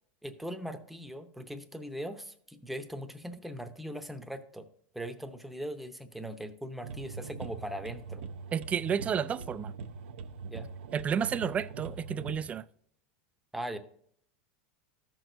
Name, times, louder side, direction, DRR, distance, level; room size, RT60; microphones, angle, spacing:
voice 1, 0.2-4.7 4.9-8.2 10.5-10.7 13.5-13.8, equal, ahead, 0.7 m, -40 dB
sound 1, 6.8-12.4, right 5 dB, 85° right, 0.7 m, -42 dB
voice 2, 8.5-9.7 10.9-12.6, right 7 dB, 20° right, 0.3 m, -31 dB
13.5 x 6.1 x 2.6 m
supercardioid pair, 125°, 6 cm